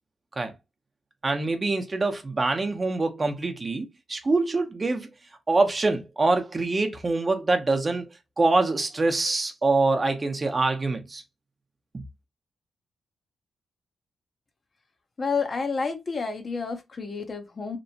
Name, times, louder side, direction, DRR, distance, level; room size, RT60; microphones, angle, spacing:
voice 1, 1.2-5.1 5.5-11.2 11.9-12.0, right 3 dB, 40° right, 0.7 m, -25 dB
voice 2, 15.2-17.8, left 4 dB, 50° left, 0.7 m, -30 dB
2.9 x 2.1 x 2.7 m
supercardioid pair, 45°, 0 cm